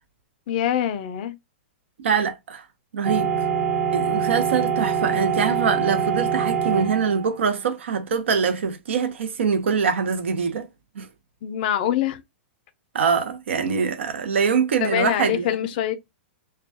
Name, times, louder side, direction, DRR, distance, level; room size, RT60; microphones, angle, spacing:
voice 1, 0.5-1.4 11.4-12.2 14.8-15.9, left 11 dB, 50° left, 0.4 m, -24 dB
voice 2, 2.0-2.6 2.9-3.3 3.9-10.7 11.0-11.1 12.9-15.5, right 6 dB, 90° right, 0.6 m, -23 dB
sound 1, 3.0-7.3, right 7 dB, 60° right, 1.0 m, -24 dB
2.2 x 2.1 x 2.6 m
hypercardioid pair, 150°, 6 cm